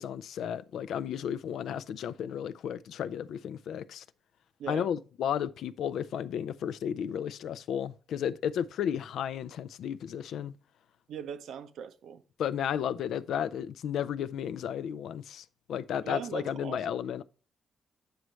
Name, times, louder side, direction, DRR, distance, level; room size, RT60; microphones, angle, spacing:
voice 1, 0.0-4.0 4.7-10.5 12.4-17.2, left 9 dB, 85° left, 0.4 m, -33 dB
voice 2, 11.1-12.2 16.0-16.9, right 7 dB, 85° right, 0.7 m, -39 dB
9.3 x 6.2 x 3.2 m
cardioid pair, 100°, 0 cm